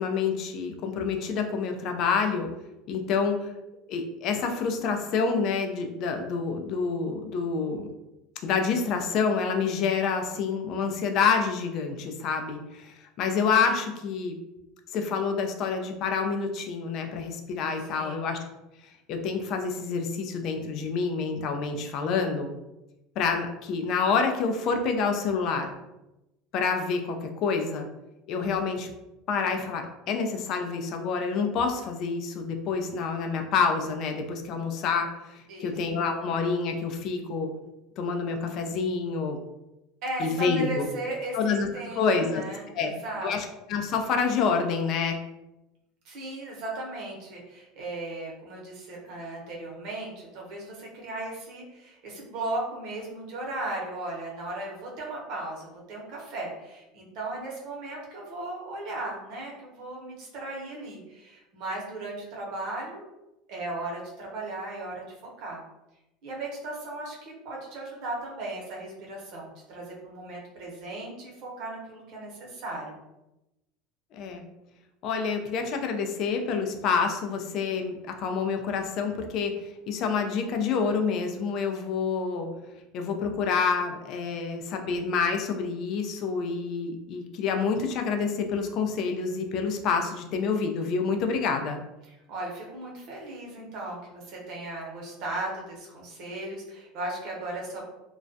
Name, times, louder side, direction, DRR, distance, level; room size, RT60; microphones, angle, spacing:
voice 1, 0.0-2.5 2.9-3.5 3.9-7.9 8.4-14.3 14.9-18.4 19.1-22.5 23.2-25.7 26.5-27.9 28.3-28.9 29.3-37.5 38.0-39.4 40.2-40.8 41.3-41.7 42.0-42.4 42.7-42.9 43.2-45.2 74.1-74.5 75.0-82.5 82.9-91.8, left 5 dB, 55° left, 5 dB, 0.4 m, -28 dB
voice 2, 40.0-43.3 46.0-63.1 63.5-65.0 65.4-65.6 66.2-73.0 92.3-97.8, right 2 dB, 60° right, -2 dB, 0.8 m, -36 dB
2.2 x 2.1 x 2.6 m, 0.96 s
supercardioid pair, 110°, 0 cm